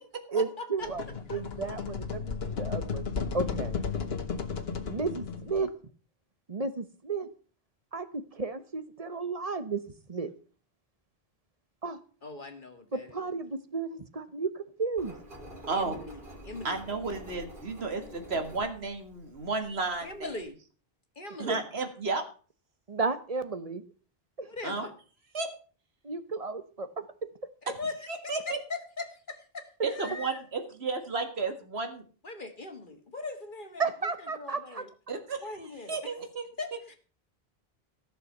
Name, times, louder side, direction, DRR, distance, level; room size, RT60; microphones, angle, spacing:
voice 1, 0.3-1.0 1.3-3.1 3.3-3.8 4.9-5.7 6.5-7.3 7.9-9.8 10.1-10.3 11.8-12.0 12.9-15.1 22.9-23.9 24.4-24.5 26.0-27.3 33.8-34.9, right 4 dB, 40° right, 11 dB, 1.1 m, -33 dB
sound 1, 0.8-5.7, left 5 dB, 75° left, 1.5 m, -34 dB
voice 2, 12.2-13.2 15.7-16.2 16.4-16.8 20.0-20.6 21.2-21.6 24.5-24.9 27.8-30.4 32.2-33.8 34.4-34.9 35.4-36.1 36.6-37.0, left 3 dB, 55° left, 6 dB, 1.9 m, -40 dB
Engine, 15.0-20.5, right 1 dB, 55° right, 2.9 m, -48 dB
voice 3, 16.6-20.3 21.4-22.2 24.6-24.9 25.3-25.5 28.1-28.6 29.8-32.0 35.1-35.5 35.9-36.8, right 3 dB, 85° right, 7 dB, 2.1 m, -33 dB
15.0 x 6.7 x 6.5 m, 0.40 s
omnidirectional pair, 1.0 m